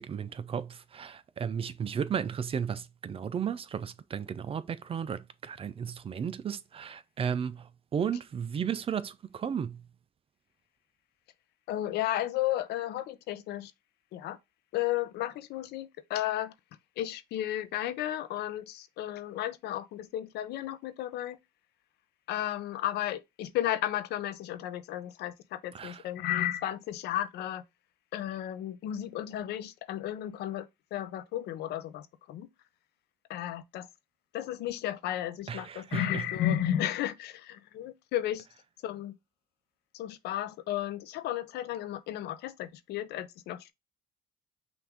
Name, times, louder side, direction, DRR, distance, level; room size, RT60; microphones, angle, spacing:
voice 1, 0.0-9.8 25.7-26.0 35.5-36.2, right 7 dB, 35° right, 0.4 m, -34 dB
voice 2, 11.7-13.7 14.1-14.4 14.7-16.5 17.0-21.4 22.3-27.6 28.1-30.7 30.9-32.5 33.3-33.9 34.3-38.4 38.8-39.1 39.9-43.7, left 12 dB, 75° left, 0.6 m, -33 dB
5.9 x 2.6 x 3.5 m
cardioid pair, 110°, 17 cm